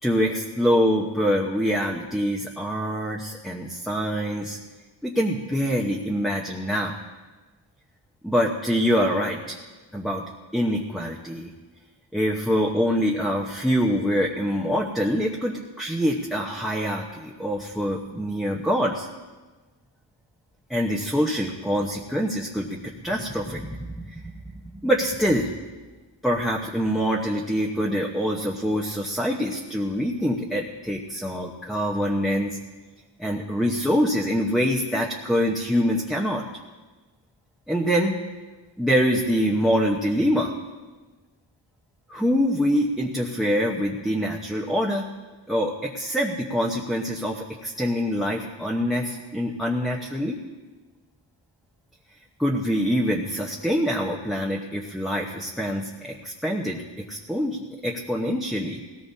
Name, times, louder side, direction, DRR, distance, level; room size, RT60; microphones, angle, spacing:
voice 1, 0.0-4.6 5.0-6.9 8.2-9.6 9.9-10.2 10.5-11.5 12.1-19.1 20.7-22.8 23.0-23.8 24.0-24.3 24.8-25.5 26.2-32.6 33.2-36.4 37.7-38.1 38.8-40.5 42.1-45.1 45.5-50.4 52.4-56.8 57.1-57.6 57.8-58.8, equal, ahead, -1 dB, 1.0 m, -25 dB
19.0 x 18.0 x 2.8 m, 1.3 s
wide cardioid pair, 115°, 45 cm